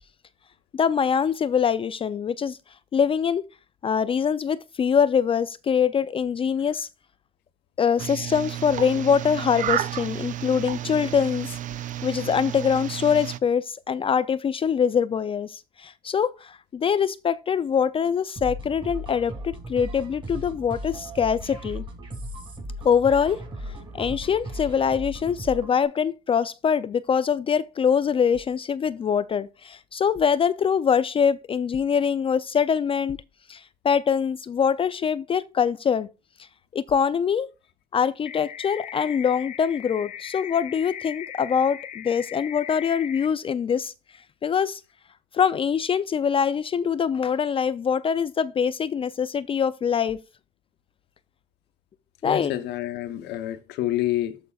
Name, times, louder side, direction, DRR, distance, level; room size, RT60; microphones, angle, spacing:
voice 1, 0.7-2.6 2.9-3.5 3.8-6.9 7.8-11.6 12.0-21.8 22.8-23.4 23.9-33.2 33.5-36.1 36.7-37.5 37.9-43.9 44.4-44.8 45.3-50.2 52.2-52.5, left 7 dB, 35° left, 0.4 m, -23 dB
sound 1, 8.0-13.4, right 12 dB, 50° right, 0.5 m, -32 dB
sound 2, 18.4-25.8, equal, 30° right, 5.3 m, -37 dB
sound 3, 38.3-43.3, left 10 dB, 50° left, 1.0 m, -39 dB
voice 2, 52.2-54.4, left 13 dB, 85° left, 0.8 m, -28 dB
14.0 x 5.3 x 2.3 m
cardioid pair, 110°, 17 cm